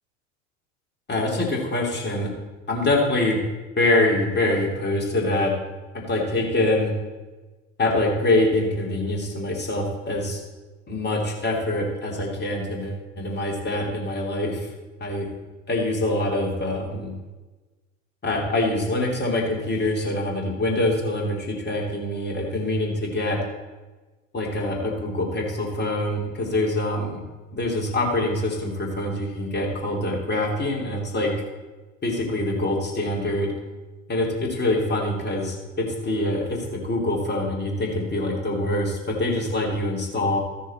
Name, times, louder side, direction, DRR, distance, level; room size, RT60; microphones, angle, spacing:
voice 1, 1.1-2.3 2.7-3.4 3.8-5.5 5.9-6.9 7.8-10.4 10.9-14.7 15.0-15.3 15.7-17.1 18.2-23.4 24.3-27.2 27.5-31.3 32.0-33.5 34.1-40.4, left 1 dB, 25° left, -1 dB, 2.9 m, -25 dB
14.0 x 6.6 x 4.3 m, 1.2 s
figure-of-eight pair, 70°, 38 cm